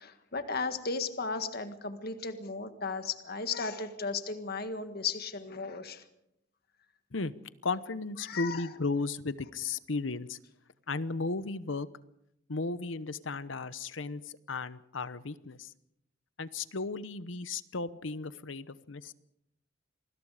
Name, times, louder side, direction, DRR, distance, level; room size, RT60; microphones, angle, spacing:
voice 1, 0.0-6.0 8.2-8.7, left 4 dB, 55° left, 8 dB, 1.7 m, -35 dB
voice 2, 7.6-10.4 10.9-11.9 12.5-15.7 16.4-19.1, left 3 dB, 85° left, 15 dB, 1.0 m, -35 dB
28.0 x 20.5 x 5.0 m, 0.80 s
head